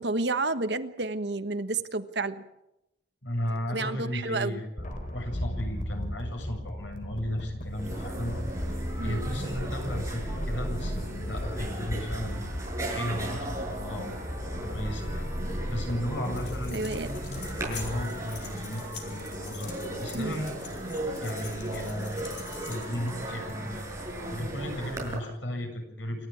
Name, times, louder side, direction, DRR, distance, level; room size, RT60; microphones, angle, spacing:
voice 1, 0.0-2.4 3.7-4.6 9.0-9.2 16.7-17.1 20.1-20.4, right 3 dB, 65° right, 10 dB, 1.3 m, -30 dB
voice 2, 3.2-8.4 9.0-12.5 12.9-14.2 14.6-15.3 15.7-17.1 17.6-20.5 21.2-22.3 22.7-23.8 24.3-26.3, equal, 90° left, 3 dB, 7.5 m, -35 dB
sound 1, 4.8-18.0, equal, 45° left, 4.0 m, -35 dB
sound 2, 7.4-7.5 7.7-25.2, right 1 dB, 15° right, 6.8 m, -37 dB
sound 3, 16.2-23.2, left 7 dB, 65° left, 5.2 m, -46 dB
28.0 x 13.0 x 8.7 m, 0.89 s
head